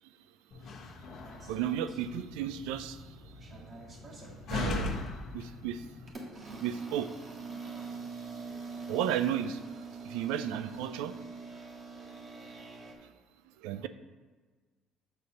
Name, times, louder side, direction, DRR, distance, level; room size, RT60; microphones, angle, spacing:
Slam, 0.5-6.1, left 3 dB, 55° left, 0.9 m, -40 dB
sound 1, 1.2-2.7 3.0-4.4 5.1-5.3 6.1-12.9, right 4 dB, 40° right, 1.6 m, -44 dB
voice 1, 1.5-3.0 4.5-5.0 5.3-5.8 6.6-7.1 8.9-9.6 10.0-11.1 13.6-13.9, right 10 dB, 90° right, 12 dB, 0.3 m, -33 dB
6.9 x 4.1 x 6.3 m, 1.4 s
supercardioid pair, 90°, 0 cm